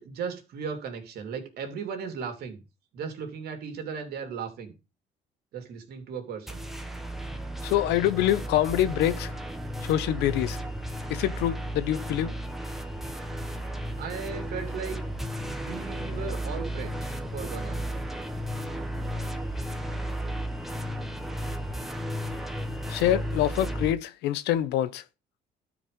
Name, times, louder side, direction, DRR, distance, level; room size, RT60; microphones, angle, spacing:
voice 1, 0.0-2.6 2.9-4.8 5.5-6.6 14.0-15.0 15.5-17.9, right 6 dB, 70° right, 3.2 m, -36 dB
sound 1, 6.5-23.9, equal, ahead, 1.6 m, -34 dB
voice 2, 7.6-9.3 9.8-10.6 11.1-12.3 22.9-25.0, left 12 dB, 85° left, 0.9 m, -25 dB
12.5 x 5.2 x 5.2 m
cardioid pair, 110°, 17 cm